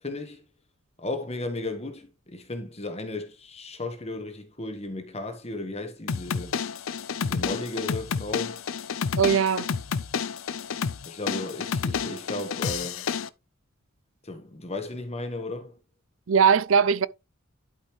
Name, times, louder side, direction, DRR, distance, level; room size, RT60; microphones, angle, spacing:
voice 1, 0.0-0.4 1.0-6.5 7.2-8.6 11.1-13.1 14.2-15.8, left 2 dB, 30° left, 1.4 m, -35 dB
sound 1, 6.1-13.3, left 6 dB, 70° left, 0.5 m, -30 dB
voice 2, 9.2-9.7 16.3-17.1, right 6 dB, 70° right, 0.5 m, -20 dB
11.5 x 5.5 x 3.2 m
head